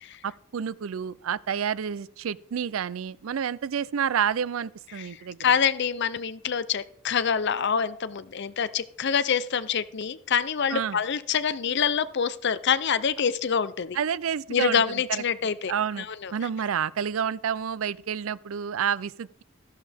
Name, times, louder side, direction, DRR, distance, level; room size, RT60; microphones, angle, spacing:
voice 1, 0.2-5.4 10.7-11.0 13.9-14.8 15.1-16.1 16.3-19.4, right 8 dB, 80° right, 0.4 m, -29 dB
voice 2, 4.9-14.0 14.5-16.5, left 7 dB, 55° left, 0.5 m, -26 dB
13.0 x 11.5 x 3.5 m
head